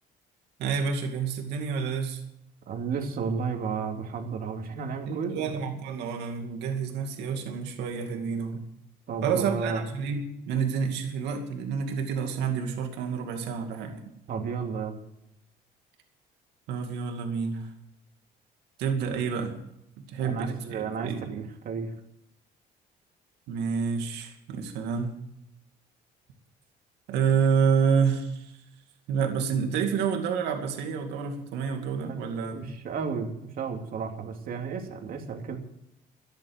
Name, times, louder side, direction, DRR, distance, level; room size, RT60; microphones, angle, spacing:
voice 1, 0.6-2.2 5.1-8.7 9.2-14.0 16.7-17.7 18.8-19.6 20.1-21.4 23.5-25.1 27.1-28.6 29.1-32.5, right 6 dB, 85° right, 4 dB, 2.4 m, -28 dB
voice 2, 2.7-5.6 9.1-9.8 14.3-15.0 20.2-21.9 32.5-35.6, right 5 dB, 60° right, 3 dB, 2.8 m, -32 dB
13.5 x 10.5 x 8.1 m, 0.80 s
cardioid pair, 110°, 17 cm